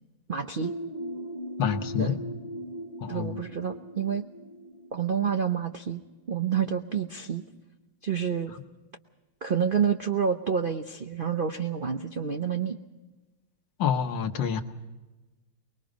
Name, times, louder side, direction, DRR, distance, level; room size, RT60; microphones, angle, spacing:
voice 1, 0.3-0.7 2.0-2.2 3.1-4.2 4.9-6.0 6.3-7.4 8.0-8.5 9.4-12.8, right 7 dB, 70° right, 7 dB, 0.5 m, -28 dB
sound 1, 0.6-6.2, equal, 45° left, 0.4 m, -39 dB
voice 2, 1.6-2.2 3.0-3.4 8.5-8.6 13.8-14.6, left 7 dB, 70° left, 7 dB, 1.7 m, -27 dB
24.0 x 21.5 x 5.2 m, 1.2 s
omnidirectional pair, 2.1 m